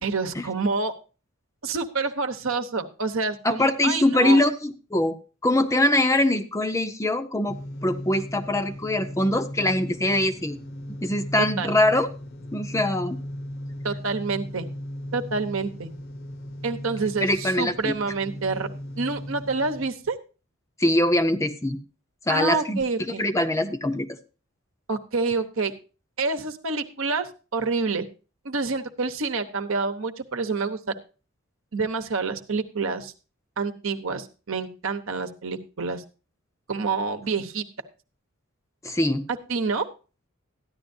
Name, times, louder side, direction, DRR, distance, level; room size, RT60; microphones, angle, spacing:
voice 1, 0.0-0.9 1.6-4.4 11.6-11.8 13.8-14.7 15.1-15.9 16.6-18.7 19.0-20.2 22.3-23.2 24.9-25.7 26.2-28.0 28.4-30.9 31.7-33.1 33.6-36.0 36.7-37.7 39.5-39.8, right 4 dB, 70° right, 7 dB, 1.0 m, -27 dB
voice 2, 3.4-5.2 5.4-10.6 11.0-12.1 12.5-13.2 17.2-18.1 20.8-21.8 22.3-24.2 38.8-39.2, left 1 dB, 15° left, 8 dB, 0.6 m, -23 dB
sound 1, 7.5-19.9, equal, 45° left, 0.8 m, -37 dB
13.5 x 10.5 x 2.7 m, 0.33 s
head